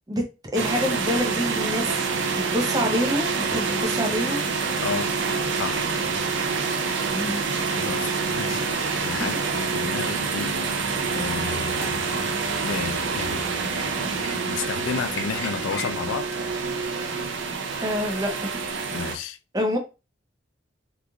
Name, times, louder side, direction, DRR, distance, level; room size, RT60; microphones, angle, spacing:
voice 1, 0.5-4.4 7.1-7.4 9.2-9.3 17.8-18.5 19.5-19.8, equal, 20° right, 0.5 m, -27 dB
sound 1, 0.5-19.2, right 4 dB, 70° right, 0.5 m, -27 dB
voice 2, 4.8-5.2 5.6-5.8 7.7-10.6 11.1-12.0 12.6-13.4 14.5-16.3 18.9-19.4, left 6 dB, 85° left, 0.3 m, -32 dB
sound 2, 5.0-17.6, left 2 dB, 70° left, 0.8 m, -44 dB
3.0 x 2.4 x 2.3 m
head